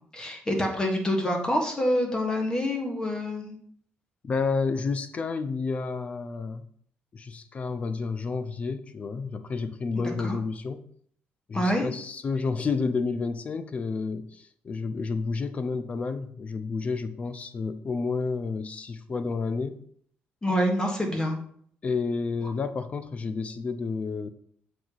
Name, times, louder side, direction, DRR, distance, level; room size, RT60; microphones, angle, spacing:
voice 1, 0.1-3.6 9.9-10.4 11.5-11.9 20.4-21.4, equal, 20° left, 2 dB, 1.5 m, -26 dB
voice 2, 4.2-6.6 7.1-10.8 11.5-19.8 21.8-24.3, left 4 dB, 35° left, 11 dB, 0.5 m, -30 dB
7.3 x 4.7 x 3.9 m, 0.62 s
cardioid pair, 130°, 4 cm